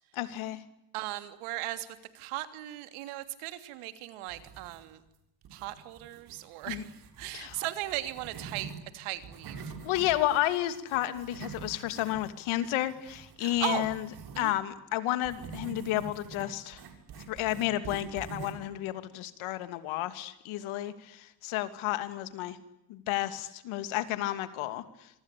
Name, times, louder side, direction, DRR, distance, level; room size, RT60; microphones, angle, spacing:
voice 1, 0.1-0.6 6.7-6.8 7.3-7.6 9.8-14.1 14.4-16.8 17.3-22.6 22.9-24.8, left 14 dB, 75° left, 11 dB, 3.0 m, -31 dB
voice 2, 0.9-1.9 2.1-5.0 5.5-6.9 7.2-9.7 13.4-13.9 14.3-14.5, right 16 dB, 85° right, 10 dB, 3.2 m, -37 dB
sound 1, 4.3-5.1 5.4-8.8 9.1-14.5 15.2-18.7, right 6 dB, 50° right, 7.2 m, -46 dB
26.5 x 25.0 x 8.6 m, 0.85 s
cardioid pair, 130°, 49 cm